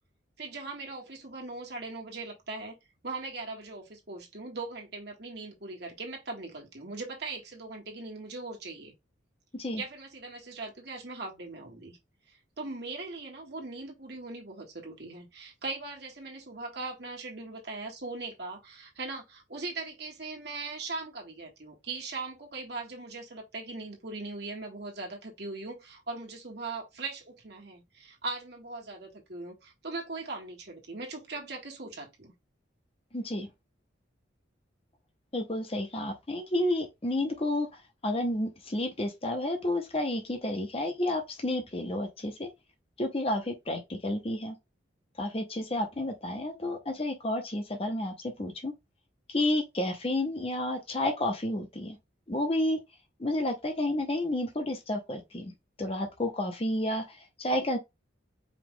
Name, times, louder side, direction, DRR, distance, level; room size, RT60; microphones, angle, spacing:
voice 1, 0.4-2.8 3.0-8.9 9.8-12.0 12.3-32.3, right 3 dB, 55° right, 1.5 m, -40 dB
voice 2, 33.1-33.5 35.3-42.5 43.0-44.6 45.2-48.7 49.3-52.0 52.3-52.8 53.2-55.5 55.8-57.8, left 1 dB, 30° left, 0.7 m, -31 dB
4.9 x 2.3 x 3.7 m
head